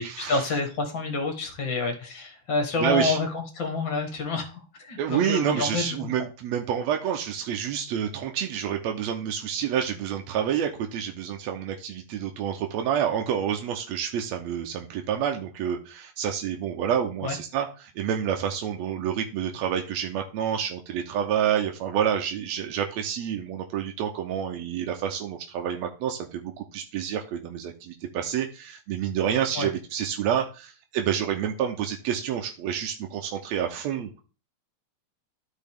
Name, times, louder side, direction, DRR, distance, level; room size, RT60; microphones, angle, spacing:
voice 1, 0.2-6.0 17.2-17.4 29.6-29.7, left 3 dB, 45° left, 4 dB, 1.8 m, -28 dB
voice 2, 2.8-3.2 5.0-34.1, right 9 dB, 75° right, 2 dB, 1.7 m, -28 dB
13.0 x 4.6 x 3.5 m, 0.35 s
omnidirectional pair, 3.7 m